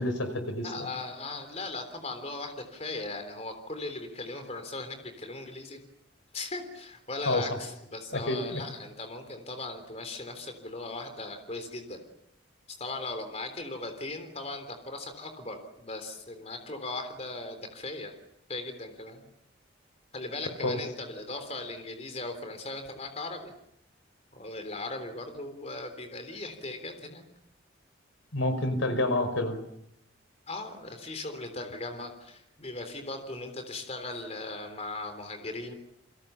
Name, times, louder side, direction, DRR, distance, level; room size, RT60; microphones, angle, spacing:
voice 1, 0.0-0.9 7.3-7.5 8.1-8.6 20.6-20.8 28.3-29.6, left 1 dB, 85° left, 9 dB, 5.0 m, -28 dB
voice 2, 0.6-5.8 6.3-12.0 12.8-18.1 18.5-19.3 20.1-23.5 24.3-27.2 30.5-35.8, left 2 dB, 35° left, 6 dB, 3.6 m, -38 dB
29.0 x 25.5 x 7.2 m, 0.75 s
head